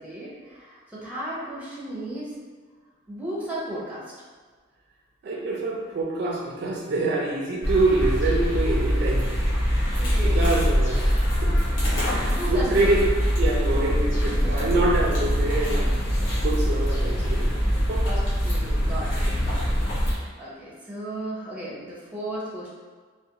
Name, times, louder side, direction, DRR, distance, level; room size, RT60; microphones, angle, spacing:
voice 1, 0.0-2.3 3.1-4.1 10.0-10.5 12.3-13.0 14.3-14.7 17.4-22.7, right 1 dB, 10° right, -7 dB, 0.6 m, -35 dB
voice 2, 5.2-9.3 10.4-11.5 12.1-13.0 13.4-15.9 16.4-17.5 17.9-18.0, right 2 dB, 55° right, -2 dB, 0.4 m, -26 dB
sound 1, 7.6-20.2, equal, 70° left, 0.9 m, -23 dB
2.4 x 2.2 x 2.7 m, 1.5 s
head